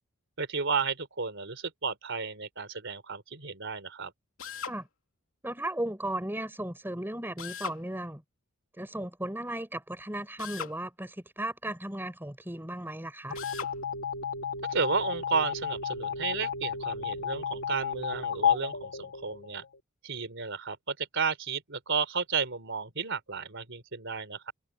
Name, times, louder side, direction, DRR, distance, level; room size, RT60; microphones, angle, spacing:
voice 1, 0.4-4.1 14.7-19.6 20.0-24.5, right 5 dB, 60° right, 3.8 m, -33 dB
Drill, 4.4-4.8 7.4-7.8 10.4-10.8 13.3-13.7, left 7 dB, 70° left, 3.5 m, -38 dB
voice 2, 5.4-8.2 8.8-13.4, right 1 dB, 10° right, 4.7 m, -36 dB
sound 1, 13.3-19.8, left 7 dB, 85° left, 2.6 m, -32 dB
head